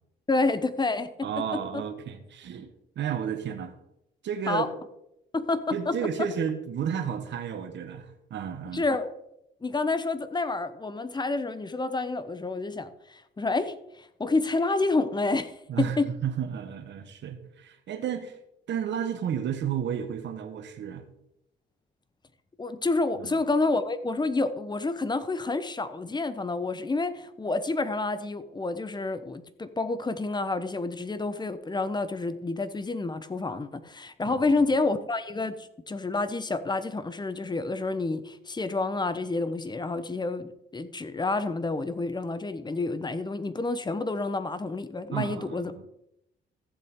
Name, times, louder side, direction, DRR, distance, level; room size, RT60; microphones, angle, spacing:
voice 1, 0.3-1.8 4.5-4.7 5.3-6.0 8.7-9.1 9.6-16.1 22.6-45.7, left 3 dB, 20° left, 12 dB, 1.0 m, -29 dB
voice 2, 1.2-2.7 2.9-3.7 4.2-4.8 5.7-8.8 15.7-18.4 18.7-21.0 23.2-23.4 34.2-34.5 45.1-45.9, right 8 dB, 65° right, 7 dB, 1.4 m, -32 dB
14.5 x 7.7 x 3.7 m, 0.82 s
cardioid pair, 90°, 20 cm